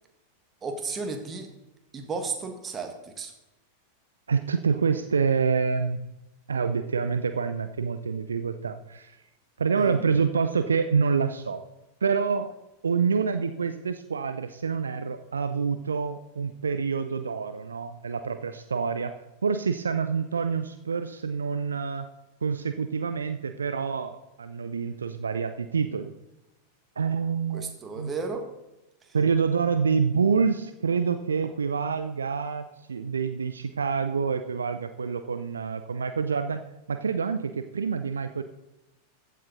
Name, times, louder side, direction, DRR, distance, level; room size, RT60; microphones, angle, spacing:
voice 1, 0.6-1.5 1.9-3.3 9.8-10.1 27.5-28.4, right 4 dB, 20° right, 5 dB, 1.6 m, -34 dB
voice 2, 4.3-6.0 6.5-9.2 9.6-11.6 12.0-12.5 12.8-19.1 19.4-22.1 22.4-26.1 27.0-28.1 29.1-36.6 36.9-38.4, right 5 dB, 70° right, 9 dB, 0.5 m, -27 dB
14.5 x 7.4 x 3.9 m, 0.96 s
figure-of-eight pair, 90°, 0 cm